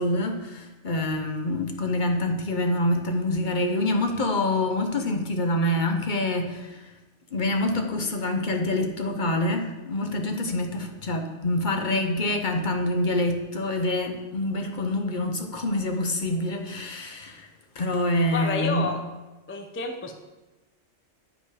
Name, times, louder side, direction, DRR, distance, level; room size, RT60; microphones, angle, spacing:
voice 1, 0.0-6.9 7.3-17.5 17.8-18.9, left 1 dB, 45° left, 4 dB, 0.8 m, -26 dB
voice 2, 18.3-19.0 19.5-20.1, left 3 dB, 20° left, 5 dB, 0.4 m, -29 dB
8.7 x 5.0 x 4.9 m, 1.1 s
omnidirectional pair, 1.3 m